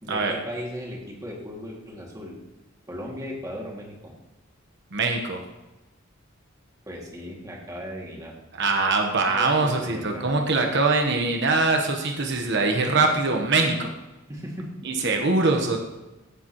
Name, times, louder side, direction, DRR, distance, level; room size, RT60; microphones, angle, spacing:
voice 1, 0.0-2.4 2.9-4.1 6.9-8.3 9.3-10.3 14.3-15.1, equal, 20° right, -3 dB, 2.2 m, -37 dB
voice 2, 4.9-5.4 8.5-13.9 14.8-15.8, right 3 dB, 60° right, 3 dB, 1.1 m, -23 dB
15.0 x 7.3 x 3.0 m, 1.0 s
head